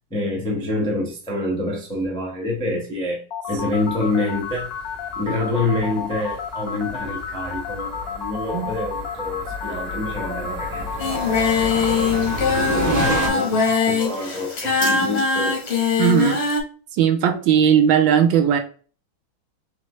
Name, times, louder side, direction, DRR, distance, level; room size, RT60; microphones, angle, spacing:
voice 1, 0.1-3.2 3.5-4.7 5.2-12.1 12.6-15.6, left 2 dB, 5° left, 0.4 m, -27 dB
sound 1, 3.3-13.9, left 7 dB, 75° left, 0.8 m, -31 dB
sound 2, 3.5-13.3, equal, 35° right, 0.9 m, -31 dB
Singing, 11.0-16.6, left 5 dB, 45° left, 0.9 m, -21 dB
voice 2, 16.0-16.4 16.9-18.6, right 8 dB, 75° right, 1.3 m, -18 dB
4.4 x 3.2 x 3.0 m
omnidirectional pair, 2.3 m